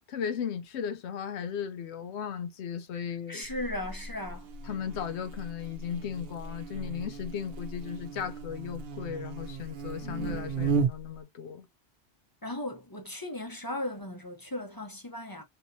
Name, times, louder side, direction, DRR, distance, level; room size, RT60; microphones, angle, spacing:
voice 1, 0.1-3.5 4.6-11.7, left 8 dB, 75° left, 0.9 m, -36 dB
voice 2, 3.3-4.5 10.0-10.5 12.4-15.4, left 1 dB, 25° left, 0.6 m, -37 dB
Buzz, 3.4-11.2, right 5 dB, 65° right, 0.8 m, -35 dB
3.4 x 2.9 x 2.7 m
omnidirectional pair, 1.1 m